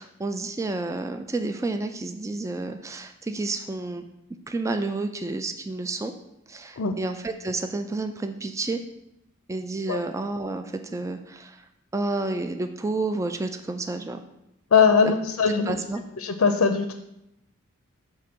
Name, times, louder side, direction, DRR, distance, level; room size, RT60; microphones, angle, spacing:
voice 1, 0.0-4.0 4.5-6.1 6.5-8.8 9.5-11.6 11.9-14.2 15.7-16.0, right 2 dB, 15° right, 7 dB, 0.3 m, -30 dB
voice 2, 14.7-15.8 16.2-16.9, left 5 dB, 75° left, 7 dB, 0.5 m, -21 dB
6.4 x 3.6 x 5.9 m, 0.84 s
head